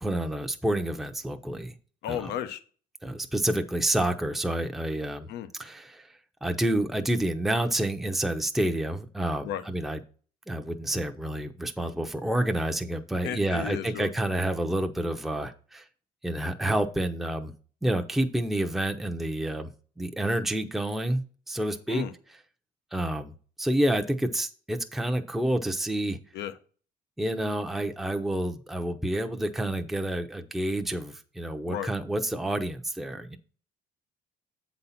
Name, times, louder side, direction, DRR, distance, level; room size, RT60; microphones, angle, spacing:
voice 1, 0.0-1.7 2.1-2.3 3.0-5.3 5.6-6.1 6.4-10.0 10.5-15.8 16.2-17.5 17.8-19.7 20.0-22.1 22.9-23.3 23.6-26.2 27.2-33.4, right 1 dB, ahead, 0.7 m, -29 dB
voice 2, 2.0-2.6 5.3-5.5 9.4-9.6 13.2-14.1 21.9-22.1 26.3-26.5 31.7-31.9, left 10 dB, 80° left, 0.9 m, -33 dB
7.8 x 4.1 x 5.7 m
cardioid pair, 110°, 17 cm